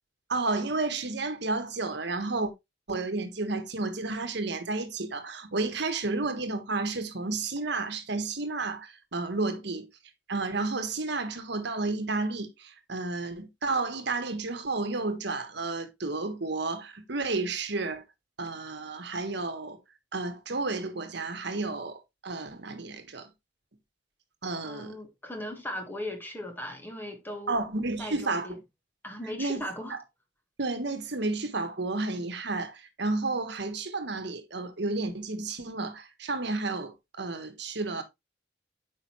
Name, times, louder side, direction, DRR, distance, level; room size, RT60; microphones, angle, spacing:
voice 1, 0.3-2.5 2.9-9.9 10.3-18.0 18.4-19.8 20.1-23.3 24.4-25.0 27.5-28.5 29.4-29.6 29.9-30.0 30.6-38.0, right 3 dB, 65° right, 1.3 m, -31 dB
voice 2, 24.6-27.6 28.0-28.6 29.0-30.0, left 1 dB, 10° left, 1.8 m, -38 dB
8.9 x 5.2 x 3.1 m
head